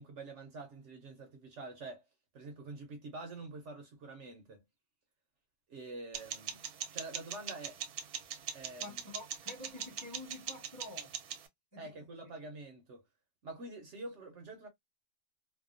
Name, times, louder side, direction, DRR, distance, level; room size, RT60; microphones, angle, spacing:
voice 1, 0.0-2.0 2.3-4.6 5.7-6.6 6.9-7.8 8.5-9.0 11.8-13.0 13.4-14.7, right 2 dB, 60° right, 0.9 m, -46 dB
sound 1, 6.1-11.5, right 8 dB, 85° right, 1.1 m, -42 dB
voice 2, 8.8-11.1 11.7-11.9, left 1 dB, 15° left, 0.7 m, -48 dB
2.7 x 2.1 x 2.4 m
omnidirectional pair, 1.6 m